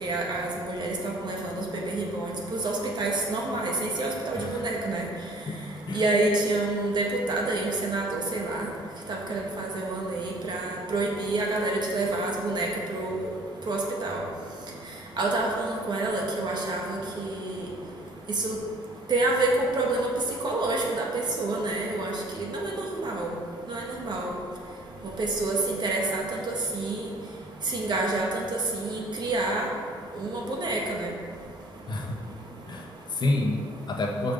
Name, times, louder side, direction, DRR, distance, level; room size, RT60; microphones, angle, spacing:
voice 1, 0.0-5.0 5.9-8.7 9.1-12.7 12.9-13.3 13.7-14.2 15.2-17.6 18.4-18.6 19.1-20.1 20.4-21.0 21.4-23.3 23.7-24.3 25.2-26.2 26.7-27.0 27.7-28.3 28.7-29.7 30.2-31.1, right 2 dB, 55° right, -1 dB, 1.6 m, -28 dB
voice 2, 32.7-34.3, left 2 dB, 55° left, 1 dB, 1.2 m, -29 dB
6.8 x 5.5 x 5.5 m, 2.1 s
cardioid pair, 75°, 9 cm